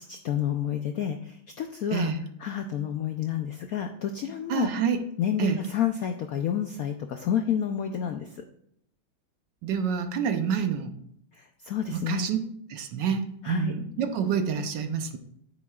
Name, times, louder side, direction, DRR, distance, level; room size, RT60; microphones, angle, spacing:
voice 1, 0.1-2.1 2.4-4.7 5.2-8.3 11.4-12.3 13.4-13.7, left 9 dB, 75° left, 5 dB, 0.8 m, -29 dB
voice 2, 1.9-2.2 4.5-5.0 5.4-5.6 9.6-10.9 11.9-12.4 12.7-15.2, right 7 dB, 70° right, 7 dB, 1.3 m, -27 dB
9.5 x 8.9 x 2.4 m, 0.69 s
omnidirectional pair, 2.2 m